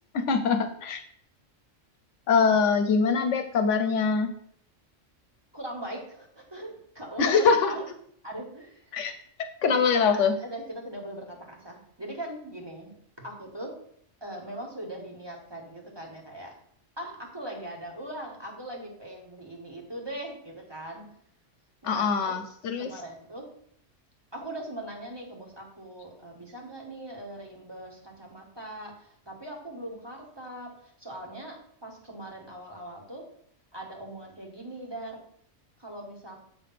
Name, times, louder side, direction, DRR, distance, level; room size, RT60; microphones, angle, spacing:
voice 1, 0.1-1.0 2.3-4.3 7.2-7.7 8.9-9.1 9.6-10.3 21.9-22.9, left 5 dB, 75° left, 8 dB, 1.0 m, -23 dB
voice 2, 5.5-7.8 8.2-9.1 10.0-12.9 13.2-13.7 14.2-16.5 17.0-21.1 21.8-22.4 22.8-23.5 24.3-33.2 33.7-35.2 35.8-36.4, right 1 dB, 20° right, 0 dB, 1.5 m, -40 dB
7.6 x 3.4 x 5.7 m, 0.64 s
omnidirectional pair, 1.3 m